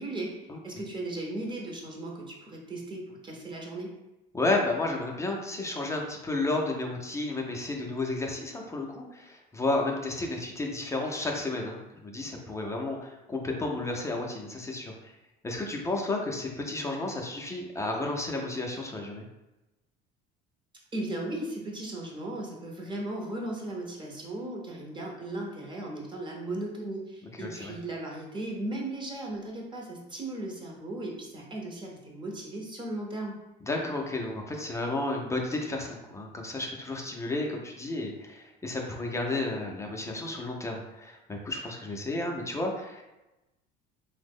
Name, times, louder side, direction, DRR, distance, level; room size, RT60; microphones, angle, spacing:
voice 1, 0.0-3.9 20.9-33.3, right 1 dB, 20° right, -1 dB, 0.7 m, -36 dB
voice 2, 4.3-15.1 15.4-19.2 27.4-27.7 33.6-43.0, left 2 dB, 15° left, 0 dB, 0.4 m, -32 dB
3.0 x 2.1 x 3.5 m, 0.99 s
supercardioid pair, 105°, 21 cm